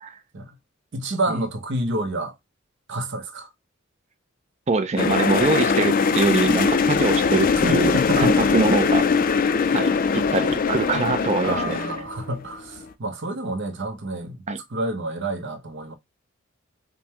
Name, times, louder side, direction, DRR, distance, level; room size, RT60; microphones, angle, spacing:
voice 1, 0.9-2.3 2.9-3.5 7.7-8.4 11.4-14.4 14.7-15.9, right 1 dB, 60° right, 0.8 m, -29 dB
voice 2, 4.7-9.0 9.7-11.8 14.5-14.6, right 3 dB, 35° right, 0.4 m, -23 dB
sound 1, 5.0-12.4 12.7-12.9, left 5 dB, 40° left, 0.3 m, -21 dB
5.1 x 2.2 x 3.0 m
head